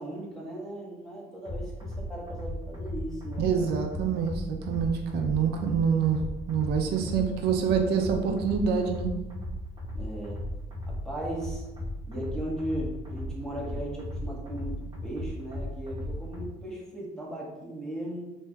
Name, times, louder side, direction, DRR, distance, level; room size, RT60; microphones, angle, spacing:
voice 1, 0.0-3.7 9.9-10.4 10.9-11.6 12.1-18.4, right 1 dB, 5° left, -5 dB, 1.1 m, -37 dB
sound 1, 1.4-16.5, left 1 dB, 25° right, 1.0 m, -36 dB
voice 2, 3.4-6.2 6.5-9.2, right 6 dB, 75° right, 4 dB, 0.4 m, -26 dB
4.4 x 2.6 x 2.2 m, 1.0 s
cardioid pair, 110°, 17 cm